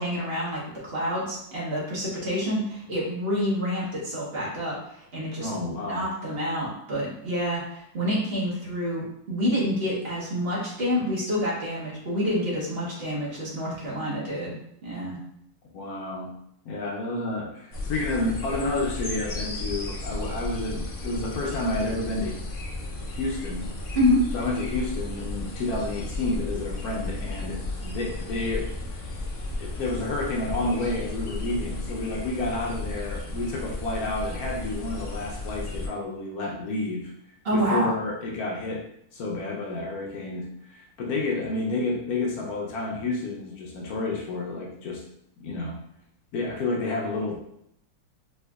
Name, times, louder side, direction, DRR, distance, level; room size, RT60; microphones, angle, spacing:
voice 1, 0.0-15.2 23.9-24.2 37.4-37.9, equal, 45° right, -5 dB, 1.1 m, -28 dB
voice 2, 5.4-6.0 15.7-16.3 16.7-22.3 23.1-23.7 24.3-28.7 29.6-37.1 37.5-38.8 39.1-45.0 45.4-45.8 46.3-47.4, left 2 dB, 75° left, -2 dB, 1.1 m, -30 dB
sound 1, 17.7-35.9, left 2 dB, 60° left, 0.5 m, -34 dB
4.3 x 2.5 x 2.3 m, 0.75 s
omnidirectional pair, 1.6 m